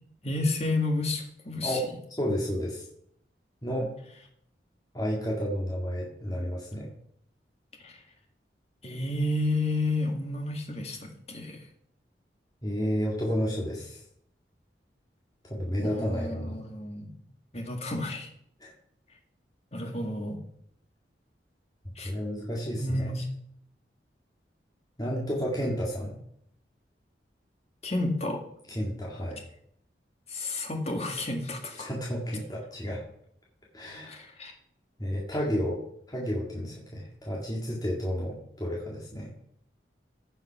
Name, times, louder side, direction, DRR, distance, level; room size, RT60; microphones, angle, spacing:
voice 1, 0.2-1.8 7.8-8.0 8.8-11.7 15.7-17.2 17.5-18.3 19.7-20.4 22.0-22.1 22.8-23.3 27.8-28.4 30.3-31.9 34.1-34.5, left 2 dB, 35° left, 3 dB, 1.9 m, -31 dB
voice 2, 2.2-2.8 3.6-3.9 4.9-6.9 12.6-14.0 15.4-16.6 18.6-18.7 22.0-23.1 25.0-26.1 28.7-29.4 31.8-33.0 33.7-34.2 35.0-35.8 36.1-39.3, equal, 20° left, -4 dB, 2.0 m, -31 dB
15.0 x 5.7 x 5.7 m, 0.70 s
head